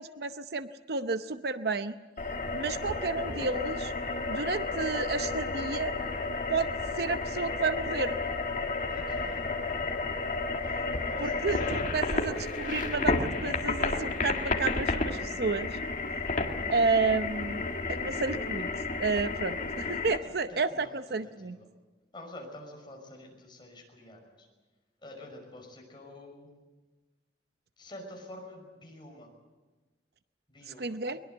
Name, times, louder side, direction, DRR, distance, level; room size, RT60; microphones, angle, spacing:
voice 1, 0.0-2.0 2.5-3.9 4.3-6.0 6.5-6.7 7.0-8.2 11.2-15.8 16.7-17.6 17.9-18.7 19.0-21.6 30.8-31.2, right 4 dB, 55° right, 10 dB, 0.7 m, -31 dB
sound 1, 2.2-20.2, left 3 dB, 45° left, 2.0 m, -32 dB
voice 2, 8.9-9.4 10.9-11.7 20.2-21.7 22.1-24.5 25.0-26.6 27.8-29.3 30.5-31.0, left 1 dB, 25° left, 1 dB, 5.7 m, -48 dB
22.0 x 21.5 x 7.9 m, 1.2 s
head